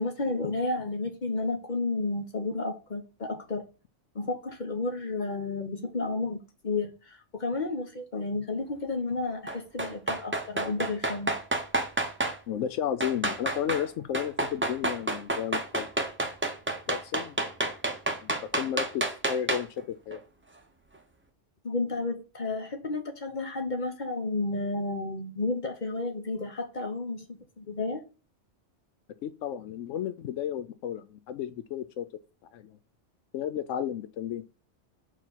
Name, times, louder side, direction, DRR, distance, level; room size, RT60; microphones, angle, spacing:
voice 1, 0.0-3.6 4.1-6.4 6.6-11.3 21.6-28.0, left 3 dB, 40° left, 1.0 m, -32 dB
sound 1, 9.5-12.4 13.0-13.9 14.1-19.8 20.1-20.2, right 2 dB, 10° right, 0.7 m, -29 dB
voice 2, 12.5-15.9 16.9-17.4 18.2-20.2 29.2-32.1 32.5-32.8 33.3-34.4, left 9 dB, 90° left, 1.0 m, -33 dB
4.5 x 4.5 x 5.7 m
omnidirectional pair, 1.2 m